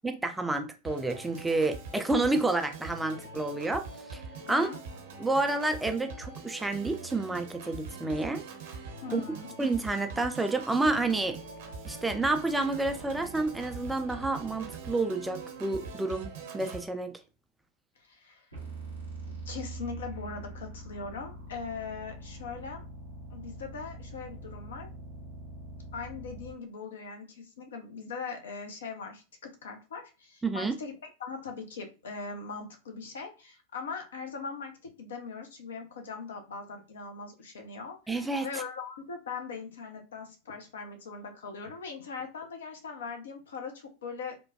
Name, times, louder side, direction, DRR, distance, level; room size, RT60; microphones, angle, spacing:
voice 1, 0.0-4.2 4.5-4.7 5.2-8.4 9.1-9.2 9.6-11.4 11.8-17.2 30.4-30.7 38.1-38.5, right 2 dB, 5° right, 0.3 m, -29 dB
Organ, 0.8-16.8, right 4 dB, 55° right, 0.7 m, -43 dB
voice 2, 4.5-4.8 9.0-9.5 18.0-18.5 19.3-22.9 23.3-24.9 25.9-44.3, left 5 dB, 65° left, 0.7 m, -40 dB
sound 1, 18.5-26.5, right 2 dB, 90° left, 1.5 m, -43 dB
3.1 x 2.2 x 2.7 m
figure-of-eight pair, 90°, 0 cm